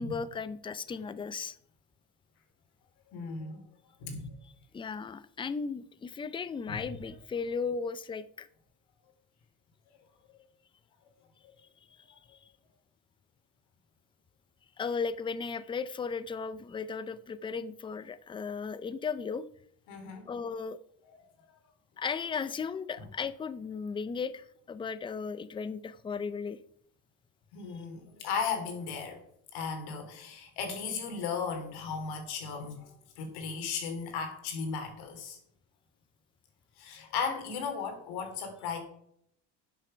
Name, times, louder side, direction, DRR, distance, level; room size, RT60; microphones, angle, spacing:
voice 1, 0.0-1.6 4.7-8.5 14.8-19.4 20.3-20.8 22.0-26.6, left 5 dB, 15° left, 15 dB, 0.5 m, -36 dB
voice 2, 3.1-3.7 4.0-4.4 6.7-6.8 19.9-20.3 21.0-21.2 21.4-21.6 27.5-29.2 29.5-35.4 36.8-38.8, left 5 dB, 75° left, 5 dB, 3.1 m, -36 dB
11.0 x 6.7 x 5.2 m, 0.71 s
cardioid pair, 110°, 39 cm